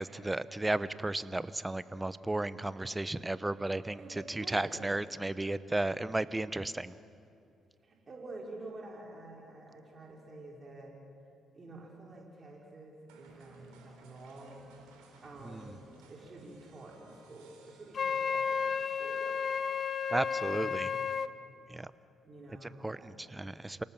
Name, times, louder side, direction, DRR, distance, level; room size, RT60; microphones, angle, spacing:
voice 1, 0.0-4.0 4.4-6.9 15.4-15.7 20.1-20.9 21.7-21.9 22.6-23.8, right 2 dB, 20° right, 15 dB, 0.9 m, -34 dB
voice 2, 3.7-4.9 7.8-10.9 11.5-14.6 15.2-19.6 20.4-21.1 22.2-23.3, right 2 dB, 45° right, -1 dB, 4.8 m, -49 dB
sound 1, 13.1-18.8, right 3 dB, 85° right, 3.5 m, -58 dB
Wind instrument woodwind instrument, 17.9-21.3, left 6 dB, 50° left, 0.7 m, -32 dB
28.0 x 18.0 x 7.5 m, 2.6 s
hypercardioid pair, 45°, 0 cm